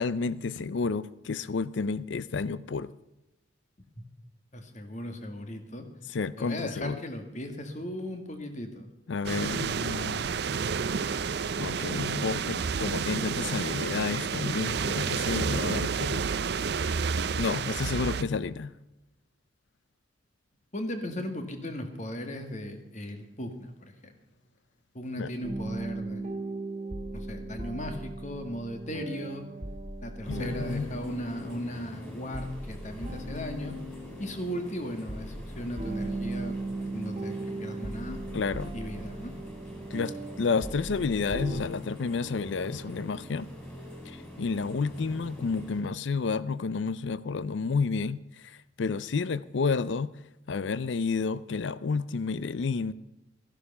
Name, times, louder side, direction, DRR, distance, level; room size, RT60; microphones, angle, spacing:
voice 1, 0.0-2.9 6.1-7.0 9.1-10.3 11.6-16.3 17.4-18.7 25.2-25.3 30.3-30.9 38.3-38.7 39.9-43.5 44.1-50.1 50.5-52.9, left 4 dB, 75° left, 0.5 m, -30 dB
voice 2, 4.5-5.9 6.4-8.9 20.7-24.1 24.9-26.3 27.1-29.4 30.0-33.7 34.2-36.6 36.9-38.2 38.7-39.3, equal, 40° left, 1.8 m, -37 dB
sound 1, 9.2-18.2, right 6 dB, 60° right, 0.5 m, -30 dB
sound 2, 25.4-41.6, right 2 dB, 35° right, 2.0 m, -38 dB
sound 3, 30.2-45.8, equal, 10° left, 4.9 m, -45 dB
14.0 x 11.5 x 5.5 m
head